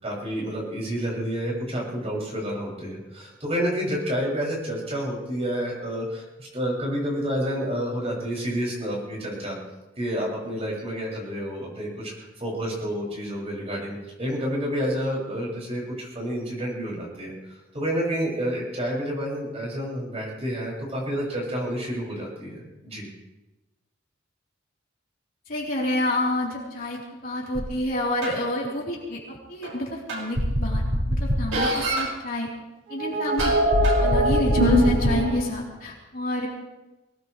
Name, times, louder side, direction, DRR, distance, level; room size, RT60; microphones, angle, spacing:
voice 1, 0.0-9.6 10.0-17.3 17.7-23.1, equal, 30° right, -4 dB, 7.0 m, -29 dB
voice 2, 25.5-30.8 31.1-32.5 32.9-33.5 34.0-36.5, left 1 dB, 45° left, -4 dB, 3.9 m, -29 dB
sound 1, 27.5-27.6 28.2-28.3 29.6-29.7 30.1-32.1 32.9-35.5, equal, 85° right, 6.2 m, -21 dB
23.0 x 18.5 x 3.4 m, 1.1 s
head